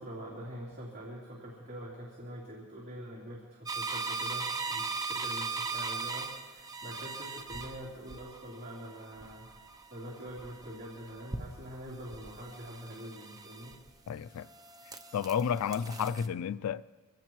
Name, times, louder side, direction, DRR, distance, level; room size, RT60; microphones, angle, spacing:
voice 1, 0.0-4.9 5.1-9.5 9.9-13.8, equal, 45° right, -5 dB, 3.0 m, -44 dB
sound 1, 3.7-14.1 14.5-16.3, right 4 dB, 15° right, 0.6 m, -39 dB
voice 2, 14.1-14.5 15.1-16.8, left 7 dB, 80° left, 16 dB, 0.3 m, -31 dB
25.0 x 17.0 x 3.1 m, 1.4 s
head